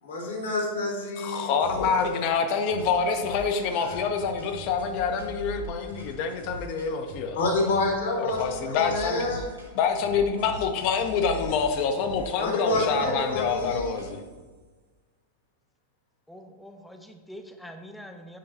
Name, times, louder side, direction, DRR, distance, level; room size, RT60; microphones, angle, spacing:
voice 1, 0.0-1.9 7.3-9.5 12.4-14.0, left 2 dB, 60° left, 0 dB, 1.5 m, -28 dB
voice 2, 1.2-7.4 8.2-9.2 9.7-14.2, left 6 dB, 45° left, 6 dB, 0.7 m, -26 dB
sound 1, 1.6-2.3 2.7-7.9 8.3-9.7 10.0-14.4, right 2 dB, 90° right, 1.4 m, -42 dB
voice 3, 16.3-18.4, equal, 5° left, 5 dB, 0.6 m, -44 dB
7.6 x 5.5 x 2.7 m, 1.3 s
figure-of-eight pair, 90°, 0 cm